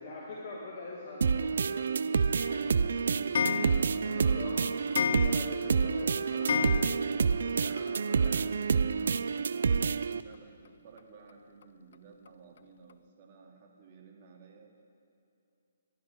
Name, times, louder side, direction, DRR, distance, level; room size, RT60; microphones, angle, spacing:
voice 1, 0.0-3.2 4.0-8.8, left 2 dB, 30° left, -11 dB, 4.5 m, -44 dB
sound 1, 1.2-10.2, right 5 dB, 75° right, 0.5 m, -28 dB
Clock, 2.4-7.5 7.8-7.9 8.1-8.2 8.4-8.5 9.7-9.8 10.3-10.4 11.0-11.1 11.6-11.7 12.3-12.4 12.9-13.0, left 7 dB, 65° left, 0.4 m, -34 dB
voice 2, 10.2-14.9, right 5 dB, 45° right, 0 dB, 2.8 m, -55 dB
29.5 x 12.0 x 3.8 m, 2.7 s
hypercardioid pair, 145°, 0 cm